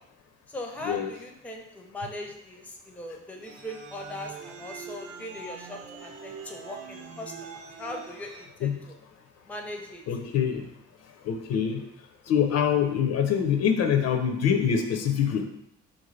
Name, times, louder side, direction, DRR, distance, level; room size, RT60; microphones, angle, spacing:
voice 1, 0.5-9.0 9.5-10.0, left 1 dB, 5° left, 2 dB, 0.5 m, -39 dB
sound 1, 3.4-8.4, right 5 dB, 55° right, 0.6 m, -43 dB
voice 2, 10.1-10.7 11.2-11.8 12.3-15.5, left 8 dB, 60° left, 5 dB, 0.5 m, -25 dB
3.5 x 2.6 x 3.1 m, 0.78 s
cardioid pair, 90°, 30 cm